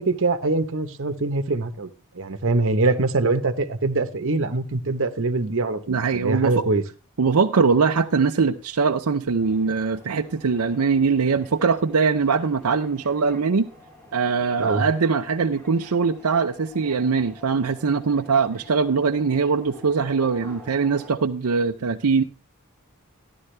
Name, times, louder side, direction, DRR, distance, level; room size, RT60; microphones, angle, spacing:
voice 1, 0.0-6.8 14.6-14.8, right 3 dB, 60° right, 1.0 m, -23 dB
voice 2, 5.9-6.6 7.2-13.7 14.1-22.2, right 5 dB, 80° right, 0.6 m, -22 dB
sound 1, 9.4-21.1, equal, 10° left, 2.7 m, -47 dB
13.5 x 11.0 x 3.3 m
head